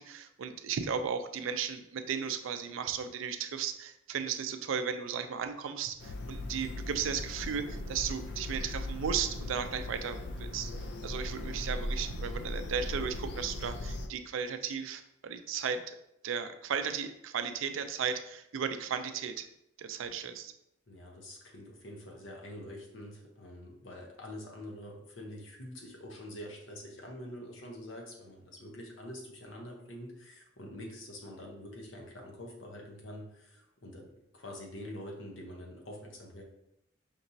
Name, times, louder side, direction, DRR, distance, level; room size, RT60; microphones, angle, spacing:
voice 1, 0.0-16.0 16.2-19.5 19.8-20.5, right 7 dB, 80° right, 9 dB, 0.4 m, -35 dB
sound 1, 6.0-14.1, left 1 dB, 55° left, 0.4 m, -38 dB
voice 2, 20.9-36.4, left 1 dB, 70° left, 0 dB, 0.9 m, -46 dB
5.2 x 2.9 x 2.6 m, 0.81 s
head